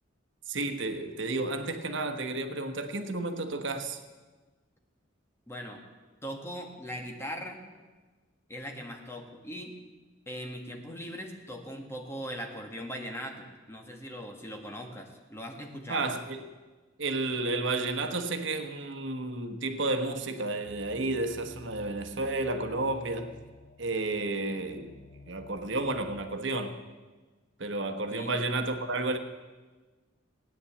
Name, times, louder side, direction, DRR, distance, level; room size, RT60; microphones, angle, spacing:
voice 1, 0.5-4.0 15.9-16.5 17.0-23.3 23.8-24.9 25.3-26.8 27.6-29.2, right 2 dB, 65° right, 6 dB, 1.2 m, -31 dB
voice 2, 5.5-5.8 6.2-7.6 8.5-9.7 10.3-16.1 28.1-28.3, equal, 15° left, 2 dB, 1.8 m, -40 dB
sound 1, 20.6-26.3, left 3 dB, 35° left, 1.1 m, -52 dB
16.5 x 9.7 x 8.5 m, 1.3 s
head